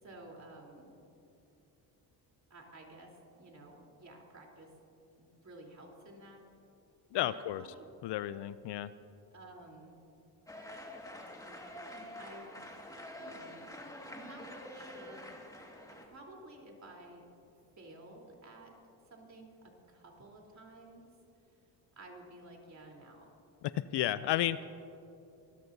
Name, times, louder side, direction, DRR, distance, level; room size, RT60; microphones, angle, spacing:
voice 1, 0.0-0.9 2.5-4.7 5.2-6.4 7.1-7.9 9.3-10.0 11.3-12.7 13.2-13.7 14.1-17.3 17.8-18.7 19.0-21.1 22.0-23.3, right 2 dB, 35° right, 0 dB, 3.6 m, -53 dB
voice 2, 7.1-7.6 8.0-8.9 23.6-24.6, left 13 dB, 60° left, 15 dB, 0.5 m, -32 dB
sound 1, 10.5-16.1, left 1 dB, 5° left, 1.9 m, -47 dB
24.5 x 14.0 x 2.7 m, 2.7 s
supercardioid pair, 75°, 47 cm